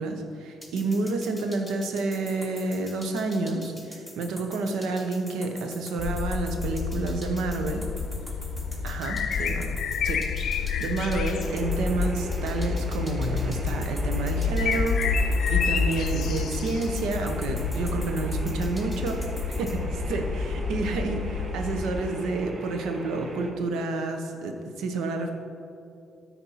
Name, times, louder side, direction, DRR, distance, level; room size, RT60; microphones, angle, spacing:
voice 1, 0.0-7.9 8.8-25.3, right 3 dB, 85° right, 5 dB, 0.9 m, -30 dB
sound 1, 0.6-19.8, left 1 dB, 5° right, 1.5 m, -45 dB
sound 2, 6.0-22.0, left 5 dB, 65° left, 0.6 m, -29 dB
sound 3, 11.4-23.5, right 2 dB, 45° right, 1.0 m, -40 dB
10.0 x 4.3 x 5.6 m, 2.5 s
cardioid pair, 90°, 0 cm